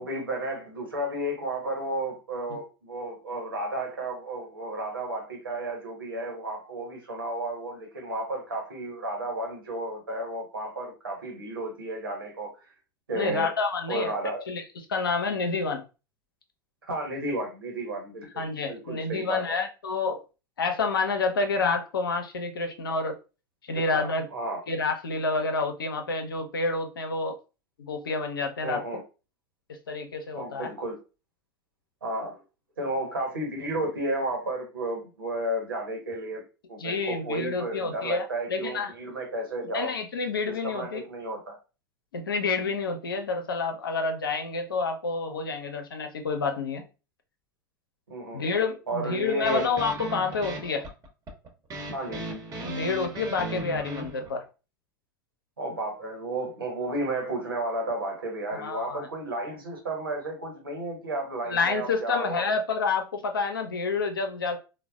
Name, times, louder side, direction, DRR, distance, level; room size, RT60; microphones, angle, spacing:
voice 1, 0.0-12.7 13.1-13.5 13.9-14.4 16.9-19.6 23.9-24.6 28.6-29.0 30.3-31.0 32.0-32.4 32.8-39.9 40.5-41.6 48.1-48.4 48.9-49.7 51.9-52.3 55.6-62.4, right 1 dB, 90° right, 1.2 m, -32 dB
voice 2, 13.1-14.1 14.5-15.8 18.4-20.2 20.6-23.1 23.7-24.3 24.7-27.4 27.8-28.8 29.7-30.7 36.8-38.9 39.7-41.0 42.1-46.8 48.3-50.8 52.6-54.4 58.5-59.1 61.5-64.6, left 4 dB, 85° left, 0.6 m, -29 dB
sound 1, 49.4-54.3, right 1 dB, 30° right, 1.0 m, -36 dB
3.9 x 2.1 x 2.3 m
hypercardioid pair, 90°, 11 cm